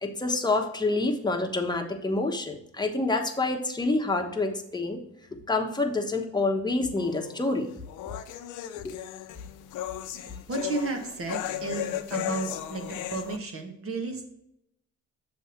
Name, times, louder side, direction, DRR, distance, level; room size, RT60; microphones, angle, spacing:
voice 1, 0.0-5.0 5.3-7.7 8.8-8.9, left 2 dB, 15° left, 2 dB, 1.1 m, -27 dB
sound 1, 7.0-13.4, left 12 dB, 90° left, 0.6 m, -36 dB
voice 2, 10.5-14.3, right 3 dB, 45° right, 3 dB, 1.6 m, -33 dB
7.2 x 3.5 x 5.9 m, 0.78 s
cardioid pair, 90°, 30 cm